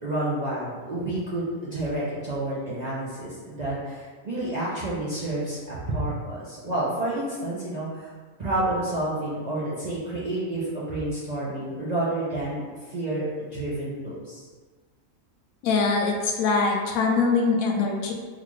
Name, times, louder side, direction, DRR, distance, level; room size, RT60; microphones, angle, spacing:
voice 1, 0.0-8.1 8.4-12.6 12.9-14.5, right 1 dB, 45° right, -9 dB, 0.5 m, -29 dB
voice 2, 15.6-18.1, left 4 dB, 80° left, 1 dB, 1.0 m, -23 dB
3.8 x 2.4 x 3.0 m, 1.4 s
omnidirectional pair, 1.5 m